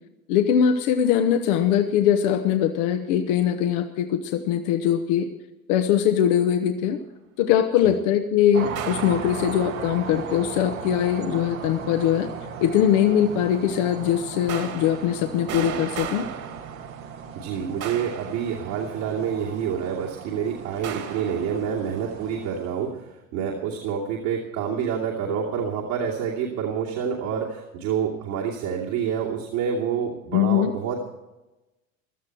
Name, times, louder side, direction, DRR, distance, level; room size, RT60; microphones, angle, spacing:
voice 1, 0.3-5.3 5.7-7.0 7.4-12.3 12.6-16.2 30.3-30.7, left 9 dB, 65° left, 6 dB, 1.1 m, -21 dB
sound 1, 8.5-22.8, right 7 dB, 85° right, 2.1 m, -37 dB
sound 2, 8.8-9.9 14.5-17.3 17.8-19.1 20.8-21.7, right 8 dB, 50° right, 2.3 m, -36 dB
voice 2, 17.3-31.1, right 7 dB, 70° right, -3 dB, 2.7 m, -28 dB
16.5 x 13.0 x 4.6 m, 1.0 s
hypercardioid pair, 80°, 40 cm